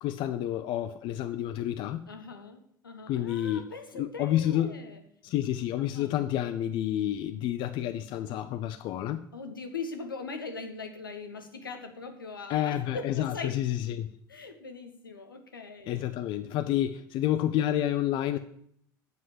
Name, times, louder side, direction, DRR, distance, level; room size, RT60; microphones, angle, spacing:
voice 1, 0.0-2.0 3.1-3.7 3.9-4.8 5.2-9.2 12.5-14.1 15.9-18.4, left 12 dB, 45° left, 0.6 m, -29 dB
voice 2, 2.1-5.0 5.8-6.1 9.3-13.5 14.3-16.0, left 4 dB, 80° left, 1.4 m, -41 dB
8.1 x 7.3 x 7.5 m
figure-of-eight pair, 70°, 11 cm